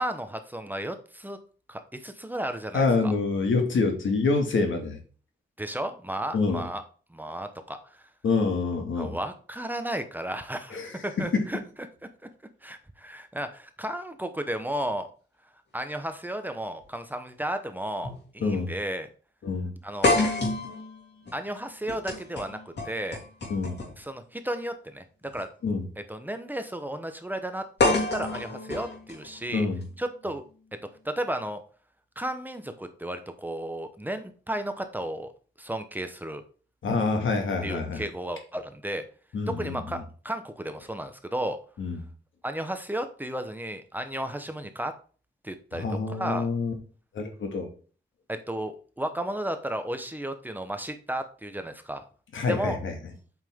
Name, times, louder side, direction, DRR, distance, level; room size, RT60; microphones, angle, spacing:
voice 1, 0.0-1.4 1.7-3.1 5.6-6.8 7.1-8.1 9.0-11.6 12.6-15.1 15.7-19.1 19.8-20.3 21.3-22.6 22.8-23.2 24.0-25.5 26.1-29.7 30.0-30.4 31.0-31.6 32.2-35.3 35.6-36.4 37.6-39.0 39.5-41.6 42.4-44.9 45.4-46.5 48.3-52.0 52.5-52.8, right 1 dB, 10° right, 8 dB, 0.8 m, -33 dB
voice 2, 2.7-5.0 6.3-6.7 8.2-9.1 10.7-10.9 11.3-11.4 18.4-18.7 19.4-19.7 23.5-23.8 25.6-25.8 29.5-29.8 36.8-38.0 39.3-39.8 41.8-42.0 45.7-46.7 47.1-47.7 52.3-52.9, left 4 dB, 90° left, 4 dB, 2.0 m, -26 dB
sound 1, 16.8-16.9 18.0-18.2 18.6-18.7 20.0-24.1 25.2-25.4 27.8-29.8, left 2 dB, 60° left, 3.3 m, -28 dB
8.1 x 5.7 x 3.6 m, 0.38 s
wide cardioid pair, 145°, 20 cm